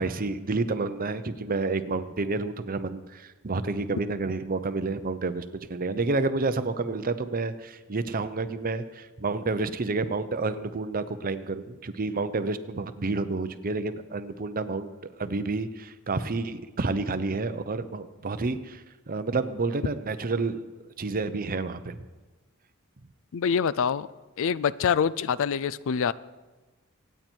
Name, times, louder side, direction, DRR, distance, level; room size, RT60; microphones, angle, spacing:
voice 1, 0.0-14.9 15.2-20.6 21.0-22.0, right 3 dB, 40° right, 0.7 m, -29 dB
voice 2, 23.3-24.1 24.4-26.1, left 7 dB, 65° left, 0.4 m, -25 dB
25.5 x 9.2 x 4.5 m
head